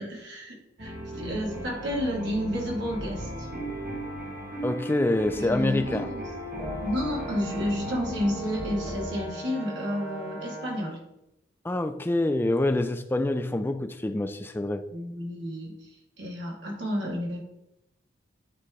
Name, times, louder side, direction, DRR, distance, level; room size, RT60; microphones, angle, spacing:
voice 1, 0.0-3.5 5.3-6.3 6.8-11.0 14.9-15.8 16.2-17.4, equal, 70° right, -3 dB, 1.9 m, -31 dB
sound 1, 0.8-9.0, equal, 45° right, 1.3 m, -36 dB
voice 2, 4.6-6.1 11.6-14.8, left 1 dB, 10° left, 8 dB, 0.3 m, -26 dB
Brass instrument, 6.6-11.0, right 1 dB, 10° right, 0.8 m, -39 dB
9.1 x 3.3 x 3.6 m, 0.87 s
head